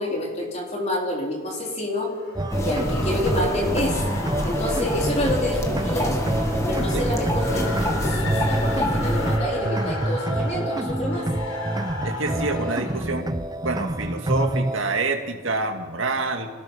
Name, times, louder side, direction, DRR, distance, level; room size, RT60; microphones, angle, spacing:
voice 1, 0.0-2.1 2.6-4.0 4.4-6.3 6.7-11.3, left 1 dB, 30° left, -1 dB, 4.1 m, -28 dB
sound 1, 2.0-13.0, left 2 dB, 85° left, 4.2 m, -35 dB
sound 2, 2.4-14.8, right 1 dB, 20° right, 0.5 m, -27 dB
sound 3, 2.5-9.4, equal, 15° left, 1.7 m, -27 dB
voice 2, 12.0-13.3 13.6-16.5, right 3 dB, 65° right, 4 dB, 2.2 m, -27 dB
26.5 x 19.0 x 5.7 m, 1.5 s
head